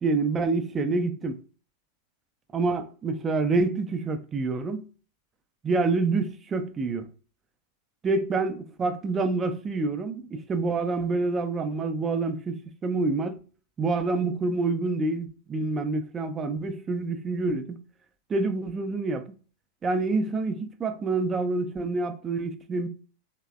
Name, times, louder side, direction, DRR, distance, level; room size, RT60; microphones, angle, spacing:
voice 1, 0.0-1.4 2.5-4.8 5.6-7.1 8.0-13.4 13.8-17.8 18.3-19.4 19.8-22.9, right 3 dB, 20° right, 0.4 m, -27 dB
3.1 x 2.0 x 2.3 m
figure-of-eight pair, 90°, 0 cm